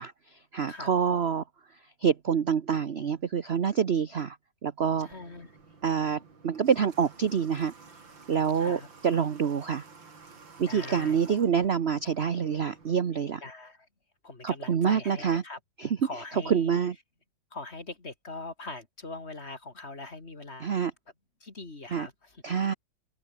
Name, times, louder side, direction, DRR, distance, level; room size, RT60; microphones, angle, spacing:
voice 1, 0.0-1.4 2.0-4.4 4.6-5.1 5.8-7.7 8.3-9.8 10.6-13.4 14.4-15.4 15.8-16.9 20.6-20.9 21.9-22.1 22.4-22.7, right 7 dB, 45° right, 0.8 m, -27 dB
voice 2, 0.7-1.2 5.0-5.5 8.5-8.9 10.7-11.3 13.4-13.9 14.2-15.6 16.0-16.8 17.5-20.7 21.4-22.1, left 3 dB, 30° left, 3.1 m, -42 dB
Water / Water tap faucet, 4.9-13.0, right 4 dB, 65° right, 4.3 m, -52 dB
open air
omnidirectional pair, 2.2 m